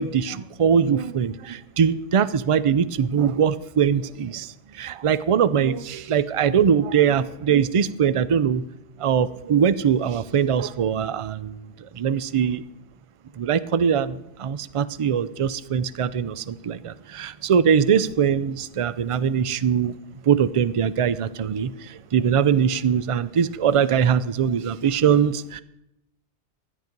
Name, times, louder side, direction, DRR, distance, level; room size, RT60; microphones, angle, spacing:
voice 1, 0.0-8.6 9.0-12.6 13.4-19.9 20.2-25.6, right 7 dB, 60° right, 16 dB, 0.3 m, -22 dB
13.0 x 11.0 x 5.2 m, 0.85 s
omnidirectional pair, 1.2 m